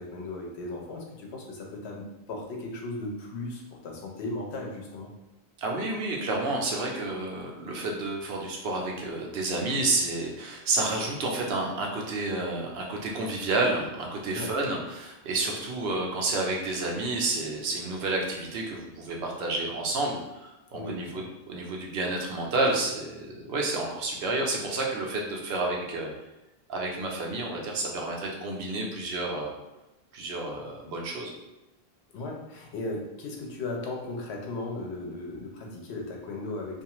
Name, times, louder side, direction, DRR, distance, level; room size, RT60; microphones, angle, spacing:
voice 1, 0.0-5.1 14.3-14.5 20.7-21.2 32.1-36.8, left 2 dB, 90° left, 0 dB, 0.9 m, -36 dB
voice 2, 5.6-26.1 26.7-29.5 30.1-31.3, right 2 dB, 75° right, -1 dB, 0.8 m, -30 dB
2.5 x 2.3 x 2.9 m, 1.0 s
omnidirectional pair, 1.1 m